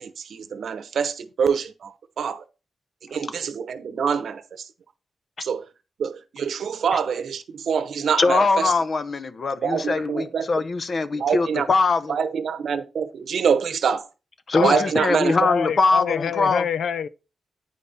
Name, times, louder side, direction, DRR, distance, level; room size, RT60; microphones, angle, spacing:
voice 1, 0.0-2.4 3.0-4.7 5.4-5.7 6.0-8.7 9.6-10.5 11.1-11.7 12.1-14.1 14.6-15.4, right 6 dB, 75° right, 0.9 m, -25 dB
voice 2, 8.2-12.1 14.5-16.6, left 3 dB, 45° left, 0.7 m, -22 dB
voice 3, 14.5-14.9 15.4-17.1, left 7 dB, 85° left, 0.5 m, -26 dB
9.4 x 5.2 x 4.1 m
wide cardioid pair, 115°, 0 cm